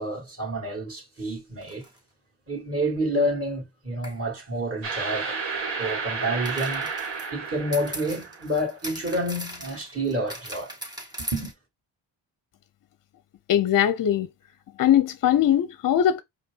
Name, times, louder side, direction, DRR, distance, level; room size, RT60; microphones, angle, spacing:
voice 1, 0.0-1.9 2.5-5.4 5.8-6.9 7.3-10.7 11.3-11.5, equal, 30° right, 2.7 m, -29 dB
sound 1, 1.6-2.0 4.0-4.2 6.4-11.5, right 1 dB, 10° right, 2.4 m, -39 dB
sound 2, 4.8-8.7, right 5 dB, 65° right, 1.8 m, -32 dB
voice 2, 13.5-14.3 14.8-16.2, left 10 dB, 45° left, 0.6 m, -20 dB
4.9 x 2.6 x 3.8 m
supercardioid pair, 65°, 46 cm